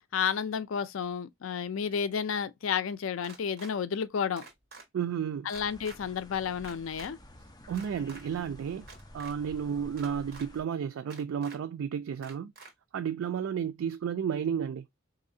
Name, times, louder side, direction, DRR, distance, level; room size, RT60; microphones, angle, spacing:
voice 1, 0.1-4.4 5.4-7.2, left 7 dB, 80° left, 0.4 m, -31 dB
sound 1, 3.2-3.7 4.4-4.8 5.5-6.0 6.6-7.1 7.7-8.2 8.8-9.3 10.0-10.5 11.1-11.6 12.2-12.7, right 3 dB, 50° right, 1.2 m, -48 dB
voice 2, 4.9-5.5 7.7-8.9 9.1-12.5 12.9-14.8, right 8 dB, 85° right, 0.3 m, -32 dB
sound 2, 5.5-10.6, equal, 20° left, 0.6 m, -51 dB
4.0 x 2.6 x 2.6 m
head